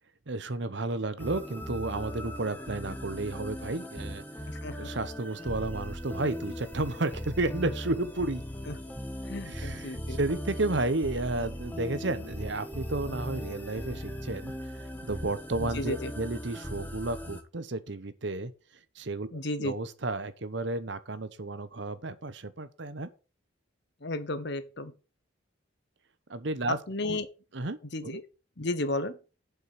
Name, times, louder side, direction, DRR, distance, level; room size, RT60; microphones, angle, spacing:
voice 1, 0.3-4.2 4.7-8.4 9.4-14.5 15.0-18.5 19.0-19.3 19.6-23.1 26.3-26.8 27.0-27.2 27.5-27.8 28.0-28.2, right 2 dB, 60° right, 0.9 m, -32 dB
sound 1, 1.2-17.4, equal, 10° left, 1.1 m, -39 dB
voice 2, 4.5-4.9 8.7-8.8 9.3-10.2 15.6-16.1 19.3-19.7 24.0-24.9 26.7-27.3 27.9-28.2 28.6-29.2, left 2 dB, 55° left, 1.0 m, -33 dB
7.6 x 5.7 x 6.7 m
head